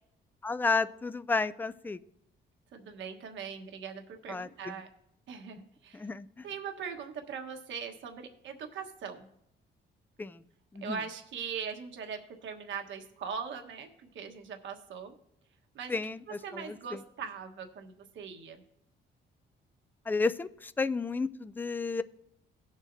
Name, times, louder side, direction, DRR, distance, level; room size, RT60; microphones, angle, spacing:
voice 1, 0.4-2.0 4.3-4.7 5.9-6.5 10.2-10.4 10.7-11.0 15.9-16.2 16.5-17.0 20.1-22.0, left 4 dB, 10° left, 12 dB, 0.4 m, -32 dB
voice 2, 2.7-4.9 5.3-6.1 6.4-9.3 10.8-15.1 15.7-16.0 16.3-18.6, right 6 dB, 75° right, 4 dB, 1.3 m, -41 dB
17.5 x 7.3 x 2.6 m, 0.76 s
cardioid pair, 90°, 20 cm